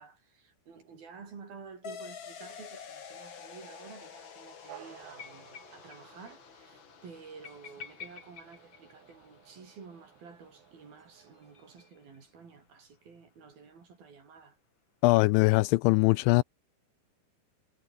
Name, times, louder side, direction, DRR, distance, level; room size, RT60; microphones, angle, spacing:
voice 1, 0.0-14.6, right 5 dB, 50° right, 6.7 m, -51 dB
sound 1, 1.8-10.9, left 7 dB, 65° left, 1.2 m, -50 dB
sound 2, 4.7-11.9, right 11 dB, 85° right, 4.6 m, -56 dB
sound 3, 5.2-6.0 6.3-6.4 6.6-6.7 7.4-9.5 11.0-12.2, left 7 dB, 40° left, 2.4 m, -49 dB
voice 2, 15.0-16.4, left 22 dB, 85° left, 2.8 m, -22 dB
omnidirectional pair, 5.4 m